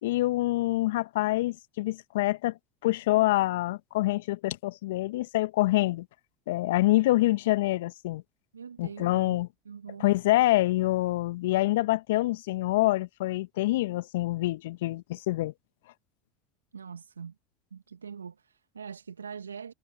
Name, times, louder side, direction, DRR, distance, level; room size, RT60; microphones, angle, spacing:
voice 1, 0.0-2.5 2.8-6.0 6.5-8.2 8.8-9.5 10.0-15.5, left 17 dB, 70° left, 1.4 m, -26 dB
voice 2, 8.5-9.4 9.6-10.0 16.7-17.3 17.7-19.7, right 6 dB, 85° right, 1.6 m, -43 dB
figure-of-eight pair, 75°, 0 cm